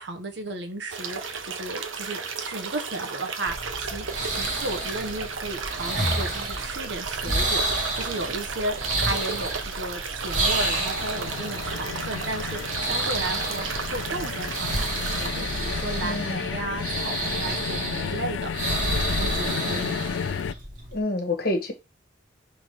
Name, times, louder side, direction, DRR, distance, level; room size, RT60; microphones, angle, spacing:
voice 1, 0.0-7.6 7.9-12.6 12.9-13.6 13.9-18.5 19.2-20.1, right 2 dB, 60° right, 1.2 m, -34 dB
sound 1, 0.9-15.3, right 5 dB, 85° right, 1.1 m, -34 dB
sound 2, 3.4-21.0, right 1 dB, 40° right, 1.7 m, -30 dB
sound 3, 10.6-20.5, left 7 dB, 65° left, 0.3 m, -33 dB
voice 2, 16.0-16.5 20.9-21.7, left 2 dB, 50° left, 1.5 m, -27 dB
5.9 x 3.6 x 4.9 m
head